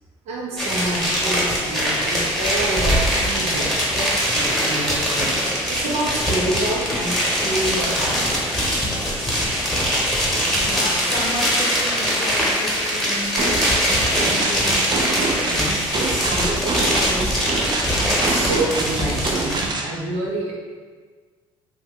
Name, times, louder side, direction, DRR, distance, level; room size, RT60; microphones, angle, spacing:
voice 1, 0.3-8.2 15.4-17.4 18.3-20.5, right 2 dB, 65° right, -2 dB, 0.8 m, -28 dB
sound 1, 0.6-19.7, equal, 5° left, 1.1 m, -22 dB
voice 2, 10.5-15.1, left 2 dB, 60° left, -1 dB, 0.6 m, -32 dB
sound 2, 13.4-19.9, right 3 dB, 40° right, 0.4 m, -26 dB
2.7 x 2.3 x 3.6 m, 1.5 s
hypercardioid pair, 65°, 12 cm